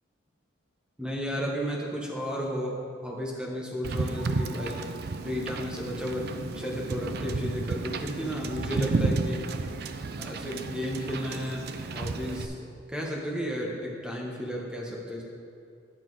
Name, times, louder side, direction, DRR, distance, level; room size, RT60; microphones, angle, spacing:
voice 1, 1.0-2.7 3.0-4.8 5.2-6.3 6.5-9.4 10.2-15.2, equal, 5° right, -3 dB, 1.0 m, -33 dB
Wind / Boat Water vehicle, 3.8-12.5, right 3 dB, 50° right, 0.4 m, -32 dB
9.7 x 5.9 x 4.7 m, 2.4 s
head